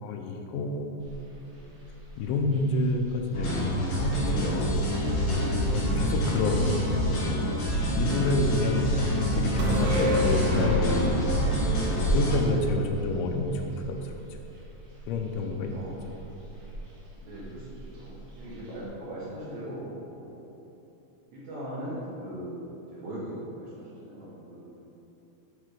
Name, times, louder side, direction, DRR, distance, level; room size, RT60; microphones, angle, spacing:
voice 1, 0.0-1.1 2.2-4.7 5.5-6.8 7.6-8.9 9.3-11.3 12.1-13.6 13.9-14.2 15.1-15.8, left 2 dB, 85° left, 4 dB, 3.0 m, -29 dB
sound 1, 1.0-18.9, right 1 dB, 55° right, 2.0 m, -40 dB
sound 2, 3.3-12.4, equal, 60° left, 2.8 m, -27 dB
voice 2, 7.8-8.3 15.7-16.2 17.2-19.9 20.2-20.5 21.3-22.6 22.9-24.7, right 1 dB, 70° right, -8 dB, 2.4 m, -40 dB
sound 3, 9.6-13.2 13.5-13.6, equal, 85° right, 3.5 m, -29 dB
8.6 x 3.8 x 4.8 m, 2.9 s
omnidirectional pair, 5.3 m